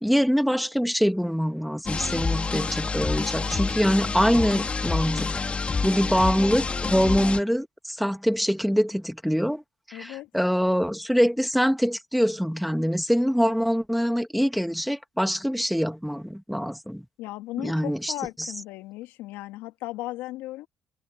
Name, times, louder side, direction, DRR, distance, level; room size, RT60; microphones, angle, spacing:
voice 1, 0.0-5.4 5.8-9.6 9.9-17.0 17.6-18.1 18.4-18.5, equal, ahead, 2.0 m, -24 dB
sound 1, 1.9-7.4, left 4 dB, 35° left, 4.2 m, -28 dB
voice 2, 9.9-10.3 17.2-20.7, left 17 dB, 80° left, 2.5 m, -36 dB
supercardioid pair, 65°, 4 cm